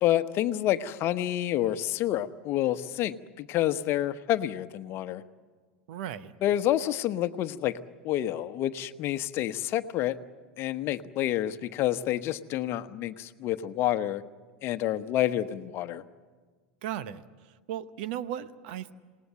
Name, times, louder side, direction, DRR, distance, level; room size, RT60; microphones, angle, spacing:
voice 1, 0.0-5.2 6.4-7.8 8.0-10.2 10.6-14.2 14.6-16.0, left 12 dB, 45° left, 11 dB, 1.0 m, -28 dB
voice 2, 5.9-6.3 16.8-17.2 17.7-18.9, right 10 dB, 60° right, 14 dB, 1.0 m, -35 dB
27.5 x 19.0 x 7.8 m, 1.5 s
hypercardioid pair, 85°, 6 cm